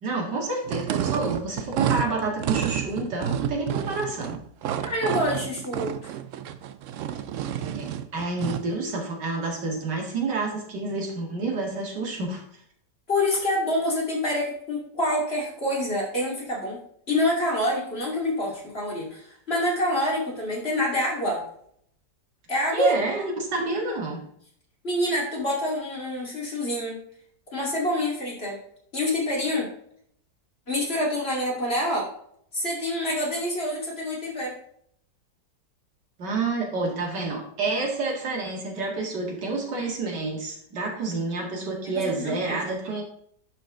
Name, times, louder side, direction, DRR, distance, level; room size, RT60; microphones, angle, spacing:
voice 1, 0.0-4.4 7.6-12.4 22.7-24.2 36.2-43.0, right 3 dB, 90° right, 0 dB, 2.5 m, -28 dB
sound 1, 0.6-8.7, right 10 dB, 70° right, 0.7 m, -30 dB
voice 2, 4.8-6.1 13.1-16.8 17.1-21.4 22.5-22.9 24.8-27.0 27.5-28.6 28.9-29.7 30.7-32.1 32.5-34.6 42.0-42.6, left 1 dB, 35° left, -3 dB, 2.7 m, -27 dB
11.0 x 4.4 x 3.7 m, 0.66 s
omnidirectional pair, 1.8 m